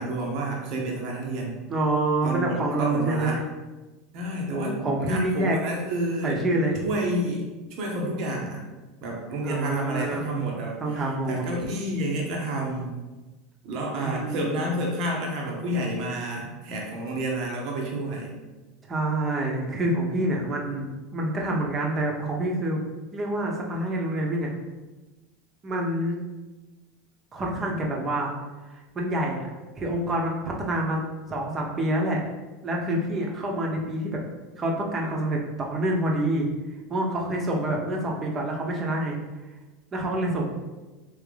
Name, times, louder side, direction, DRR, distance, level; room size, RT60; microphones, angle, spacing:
voice 1, 0.0-1.6 2.2-3.4 4.1-6.4 6.8-7.5 7.8-8.6 9.0-12.9 13.6-18.3, right 1 dB, 60° right, -1 dB, 0.9 m, -29 dB
voice 2, 1.7-3.4 4.5-5.6 6.2-6.8 9.4-10.3 10.6-11.4 14.0-14.4 18.9-22.8 23.1-24.5 25.6-26.2 27.3-28.3 28.7-29.4 29.8-31.0 31.3-32.2 32.6-34.2 34.6-36.5 36.9-39.2 39.9-40.5, right 1 dB, 35° right, 0 dB, 0.9 m, -27 dB
3.6 x 3.2 x 3.3 m, 1.2 s
hypercardioid pair, 95°, 0 cm